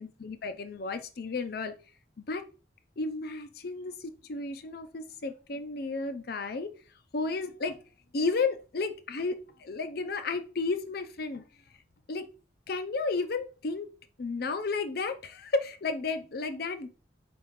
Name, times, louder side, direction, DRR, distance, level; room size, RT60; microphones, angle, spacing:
voice 1, 0.0-1.7 2.2-2.4 3.0-6.7 7.1-7.8 8.1-11.4 12.1-12.3 12.7-13.9 14.2-16.9, left 3 dB, 60° left, 9 dB, 0.6 m, -33 dB
4.6 x 3.5 x 3.1 m, 0.35 s
head